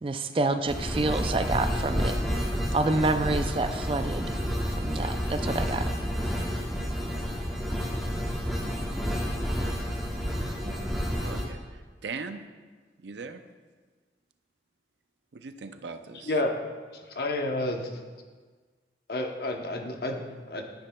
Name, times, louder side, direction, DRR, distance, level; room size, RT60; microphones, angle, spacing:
voice 1, 0.0-2.1 2.7-4.4 4.8-5.8, right 2 dB, 30° right, 8 dB, 0.4 m, -28 dB
sound 1, 0.7-11.5, equal, ahead, 1.0 m, -30 dB
voice 2, 10.6-12.4 13.0-13.4 15.3-16.4, right 4 dB, 85° right, 9 dB, 0.5 m, -40 dB
voice 3, 17.1-17.9 19.1-20.6, left 2 dB, 60° left, 3 dB, 0.9 m, -30 dB
10.5 x 9.7 x 2.3 m, 1.4 s
head